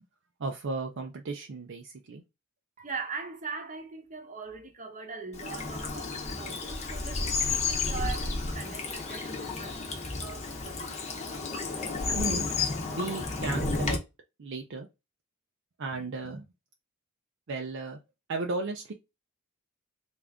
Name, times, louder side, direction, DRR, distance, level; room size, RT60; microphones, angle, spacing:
voice 1, 0.4-2.2 12.2-12.5 12.9-14.0 14.4-14.9 15.8-16.4 17.5-18.0 18.3-18.9, right 3 dB, 55° right, 0.5 m, -34 dB
voice 2, 2.8-11.2, right 5 dB, 35° right, 0.8 m, -41 dB
Bird vocalization bird call bird song / Stream, 5.3-14.0, left 4 dB, 30° left, 0.8 m, -32 dB
3.5 x 2.5 x 3.5 m
head